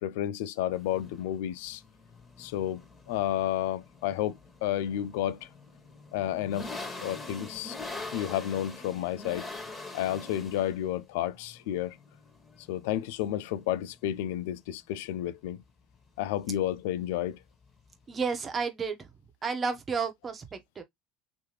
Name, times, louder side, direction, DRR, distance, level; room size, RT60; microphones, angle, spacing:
voice 1, 0.0-1.8 2.4-5.5 6.1-7.8 8.1-9.5 9.9-12.0 12.7-15.6 16.2-17.4, left 12 dB, 75° left, 0.3 m, -31 dB
sound 1, 0.7-18.6, left 3 dB, 25° left, 1.6 m, -45 dB
voice 2, 18.1-19.1 19.4-20.8, right 5 dB, 30° right, 1.2 m, -32 dB
3.3 x 3.0 x 3.1 m
hypercardioid pair, 75°, 0 cm